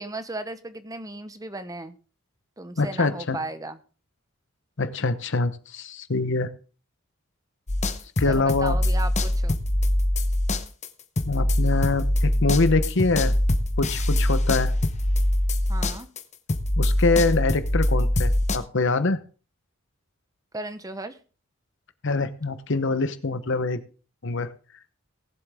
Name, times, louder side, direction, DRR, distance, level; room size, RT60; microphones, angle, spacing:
voice 1, 0.0-1.9 2.6-3.8 8.3-9.6 15.7-16.1 20.5-21.2, right 2 dB, 15° right, 11 dB, 0.9 m, -35 dB
voice 2, 2.8-3.4 4.8-6.5 8.2-8.8 11.2-13.3 13.8-14.7 16.8-19.2 22.0-23.8 24.2-24.5, left 3 dB, 65° left, 12 dB, 1.0 m, -24 dB
sound 1, 7.7-16.2 16.5-18.6, left 1 dB, 35° left, 0.9 m, -23 dB
19.0 x 7.7 x 3.6 m, 0.36 s
head